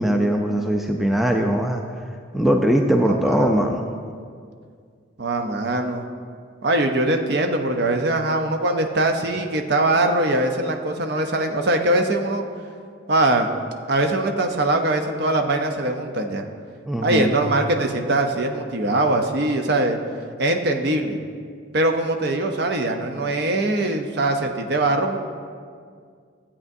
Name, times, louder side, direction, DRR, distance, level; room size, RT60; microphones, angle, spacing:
voice 1, 0.0-1.8 2.3-3.9 16.8-17.3, equal, ahead, 2 dB, 0.3 m, -20 dB
voice 2, 3.0-3.7 5.2-6.1 6.6-12.4 13.1-13.5 13.9-16.4 17.0-20.0 20.4-21.2 21.7-25.2, right 2 dB, 55° right, 4 dB, 0.6 m, -22 dB
13.5 x 8.6 x 2.7 m, 2.1 s
head